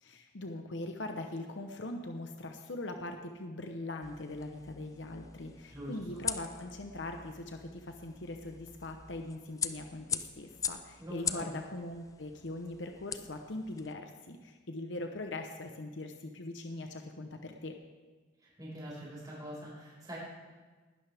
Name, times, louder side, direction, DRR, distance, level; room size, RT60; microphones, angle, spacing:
voice 1, 0.0-17.8, left 2 dB, 75° left, 5 dB, 0.9 m, -41 dB
sound 1, 4.0-13.9, left 6 dB, 20° left, 0.4 m, -42 dB
voice 2, 5.7-6.2 11.0-11.5 18.6-20.2, equal, 20° right, -6 dB, 5.3 m, -44 dB
19.5 x 11.5 x 3.5 m, 1.4 s
head